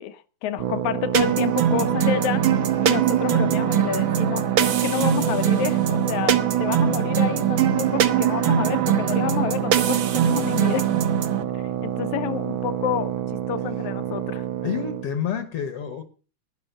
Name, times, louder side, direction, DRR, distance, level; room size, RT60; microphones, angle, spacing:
voice 1, 0.0-2.5 2.8-11.0 11.5-13.2 13.5-14.5, left 9 dB, 80° left, 2.2 m, -29 dB
sound 1, 0.6-15.1, right 10 dB, 85° right, 1.1 m, -29 dB
sound 2, 1.1-11.4, right 9 dB, 65° right, 1.3 m, -22 dB
voice 2, 14.6-16.0, left 8 dB, 60° left, 1.8 m, -28 dB
12.0 x 10.0 x 6.6 m
omnidirectional pair, 3.4 m